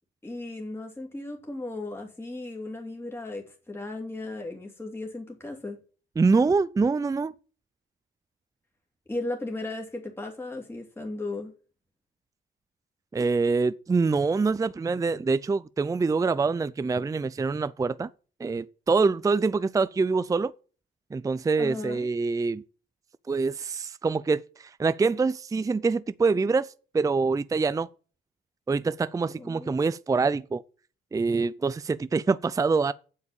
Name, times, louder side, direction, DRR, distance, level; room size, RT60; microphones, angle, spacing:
voice 1, 0.2-5.8 9.1-11.5 21.6-22.1 29.4-29.8, left 2 dB, 10° left, 2.7 m, -36 dB
voice 2, 6.2-7.3 13.1-18.1 18.4-20.5 21.1-22.6 23.3-27.9 28.7-30.6 31.1-32.9, right 4 dB, 15° right, 0.5 m, -25 dB
8.0 x 7.5 x 7.1 m
cardioid pair, 90°, 20 cm